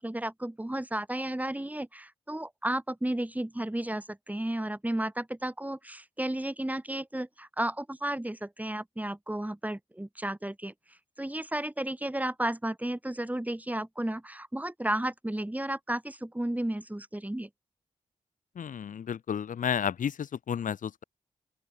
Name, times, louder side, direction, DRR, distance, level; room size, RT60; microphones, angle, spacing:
voice 1, 0.0-10.7 11.2-17.5, right 1 dB, 10° right, 7.9 m, -33 dB
voice 2, 18.6-21.0, left 8 dB, 90° left, 1.7 m, -32 dB
open air
cardioid pair, 70°, 13 cm